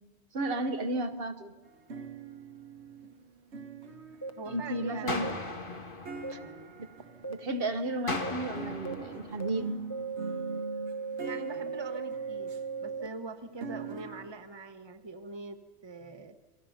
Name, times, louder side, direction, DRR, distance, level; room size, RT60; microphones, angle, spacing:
voice 1, 0.3-1.5 4.5-5.3 6.3-6.4 6.8-6.9 7.3-9.8, right 2 dB, 60° right, 8 dB, 1.2 m, -33 dB
sound 1, 1.7-8.0 8.6-14.3, right 3 dB, 90° right, 1.6 m, -44 dB
sound 2, 4.2-4.3 5.2-5.3 6.2-6.3 7.2-7.3 8.2-8.3 8.8-8.9 9.4-9.5 9.9-13.1, right 5 dB, 15° left, 0.8 m, -37 dB
voice 2, 4.4-5.2 11.2-12.5 12.8-16.4, right 3 dB, 25° right, 8 dB, 1.1 m, -42 dB
sound 3, 5.1-7.1 8.1-10.1, left 3 dB, 50° left, 2.1 m, -38 dB
28.0 x 22.0 x 5.7 m, 1.2 s
omnidirectional pair, 1.1 m